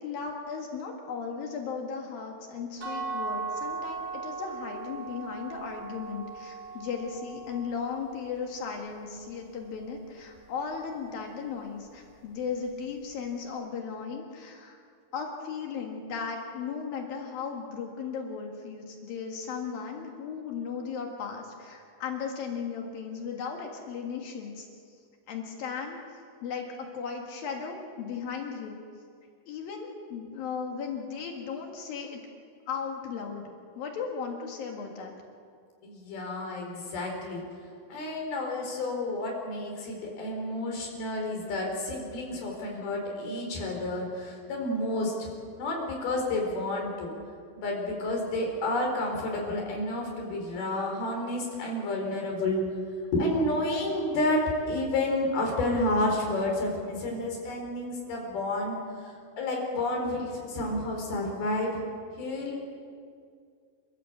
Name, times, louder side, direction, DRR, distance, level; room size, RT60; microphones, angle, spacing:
voice 1, 0.0-14.8 15.1-25.0 25.3-26.0 26.4-28.8 29.5-32.2 32.7-33.4 33.8-35.1, left 6 dB, 75° left, 1 dB, 3.5 m, -36 dB
sound 1, 2.8-8.6, right 4 dB, 60° right, 5.8 m, -38 dB
voice 2, 35.8-37.4 37.9-45.3 45.6-47.1 47.6-52.6 53.1-58.8 59.4-61.9 62.2-62.7, left 1 dB, 90° left, 0 dB, 6.1 m, -30 dB
29.0 x 14.5 x 8.2 m, 2.2 s
omnidirectional pair, 4.3 m